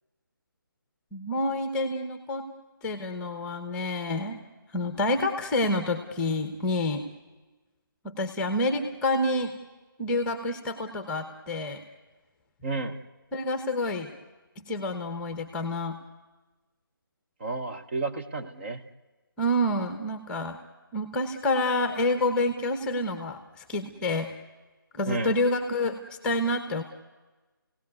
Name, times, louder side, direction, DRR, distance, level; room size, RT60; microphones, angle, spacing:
voice 1, 1.1-2.5 2.8-4.4 4.7-7.0 8.0-9.6 10.0-11.8 13.3-14.1 14.6-16.0 19.4-20.6 20.9-24.3 24.9-26.8, left 1 dB, 10° left, 7 dB, 1.0 m, -28 dB
voice 2, 12.6-13.0 17.4-18.8 25.1-25.4, right 3 dB, 30° right, 5 dB, 1.1 m, -31 dB
29.5 x 17.5 x 9.5 m, 1.3 s
figure-of-eight pair, 155°, 12 cm